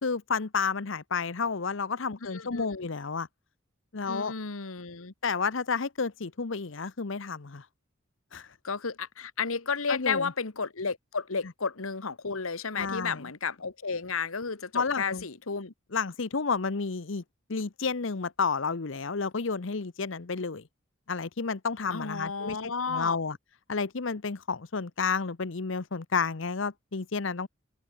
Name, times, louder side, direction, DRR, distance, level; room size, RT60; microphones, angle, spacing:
voice 1, 0.0-3.3 3.9-4.3 5.2-7.6 8.3-8.5 9.9-10.3 12.7-13.2 14.7-15.3 15.9-17.2 17.5-20.6 21.1-23.4 23.7-27.5, left 5 dB, 65° left, 0.8 m, -31 dB
voice 2, 2.2-2.9 4.1-5.1 8.6-15.7 21.9-23.2, left 5 dB, 90° left, 1.5 m, -33 dB
open air
head